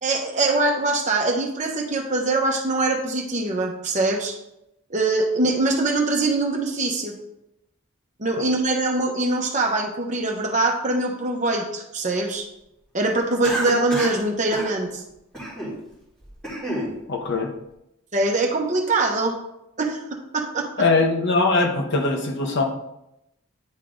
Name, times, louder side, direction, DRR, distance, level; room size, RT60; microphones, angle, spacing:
voice 1, 0.0-4.4 4.9-7.1 8.2-12.5 12.9-15.0 18.1-19.4 19.8-20.7, right 2 dB, 35° right, 1 dB, 1.0 m, -23 dB
Cough, 13.4-14.2 14.5-14.7 15.3-15.8 16.2-16.9, right 1 dB, 5° left, 2.3 m, -29 dB
voice 2, 17.1-17.5 20.8-22.7, left 3 dB, 55° left, 3 dB, 0.9 m, -21 dB
9.8 x 3.7 x 3.8 m, 0.85 s
head